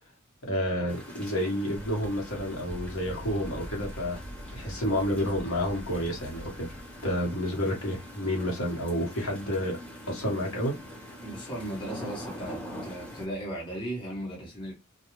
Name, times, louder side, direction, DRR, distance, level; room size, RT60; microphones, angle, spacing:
voice 1, 0.4-4.2 4.5-6.7 7.0-9.8 10.1-10.7, equal, 80° left, 1.1 m, -30 dB
sound 1, 0.9-13.3, equal, 5° left, 0.7 m, -44 dB
sound 2, 1.7-7.2, equal, 55° left, 1.0 m, -43 dB
voice 2, 11.2-14.7, right 1 dB, 25° left, 1.0 m, -36 dB
2.4 x 2.2 x 3.0 m
head